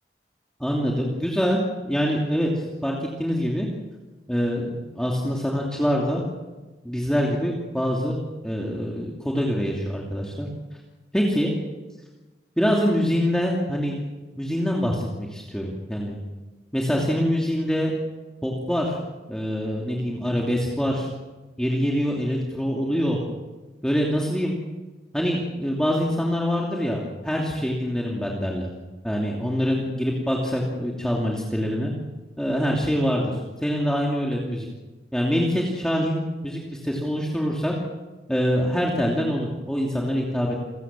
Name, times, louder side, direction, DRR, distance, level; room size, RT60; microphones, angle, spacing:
voice 1, 0.6-3.7 4.3-6.2 6.8-8.2 8.4-10.5 11.1-11.5 12.6-14.0 14.4-16.2 16.7-17.9 18.4-19.0 19.3-21.1 21.6-23.2 23.8-24.5 25.1-28.7 29.0-31.9 32.4-34.7 35.1-37.7 38.3-40.6, equal, 5° left, -2 dB, 2.7 m, -25 dB
28.0 x 16.5 x 7.5 m, 1.2 s
head